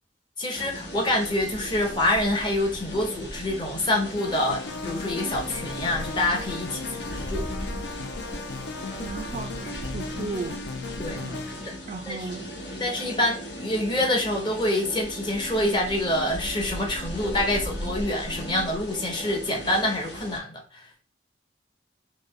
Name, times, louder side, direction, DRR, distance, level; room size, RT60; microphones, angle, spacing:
voice 1, 0.4-7.5 11.0-11.2 12.1-12.2 12.8-20.6, left 1 dB, 25° left, 0.8 m, -26 dB
sound 1, 0.5-20.4, equal, 85° left, 1.2 m, -37 dB
sound 2, 4.2-11.8, left 4 dB, 70° left, 0.5 m, -36 dB
voice 2, 9.0-10.6 11.1-12.5, right 4 dB, 40° right, 0.3 m, -36 dB
3.2 x 2.1 x 3.6 m
head